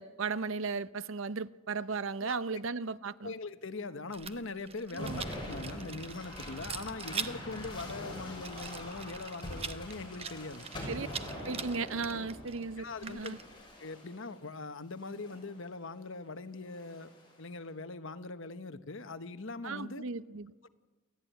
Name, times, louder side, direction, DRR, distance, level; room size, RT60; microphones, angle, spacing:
voice 1, 0.0-3.3 4.9-5.2 10.9-11.1 11.3-13.4 19.6-20.5, right 4 dB, 65° right, 0.7 m, -36 dB
voice 2, 2.2-2.6 3.2-10.7 12.8-13.4 13.8-17.1 17.4-20.0 20.6-20.7, left 3 dB, 65° left, 1.1 m, -41 dB
Rattle, 4.1-13.7, right 6 dB, 25° right, 0.9 m, -44 dB
sound 1, 5.0-14.3 15.0-15.6 16.7-17.3, left 1 dB, 20° left, 6.5 m, -44 dB
28.5 x 14.5 x 9.3 m
head